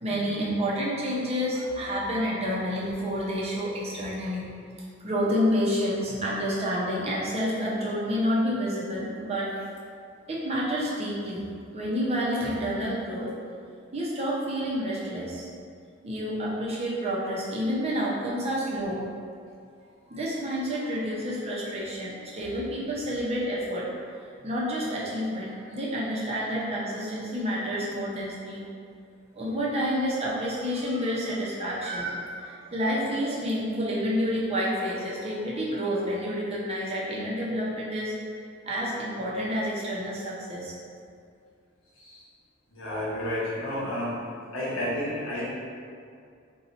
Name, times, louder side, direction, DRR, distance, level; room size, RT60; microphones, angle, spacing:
voice 1, 0.0-4.5 5.0-9.6 10.3-11.4 11.7-13.3 13.9-15.5 16.0-19.0 20.1-23.9 24.4-28.6 29.3-38.1 38.6-40.8, equal, 30° right, -6 dB, 0.6 m, -29 dB
voice 2, 42.7-44.2 44.5-45.4, left 1 dB, 80° left, -7 dB, 1.0 m, -31 dB
2.8 x 2.3 x 3.9 m, 2.3 s
head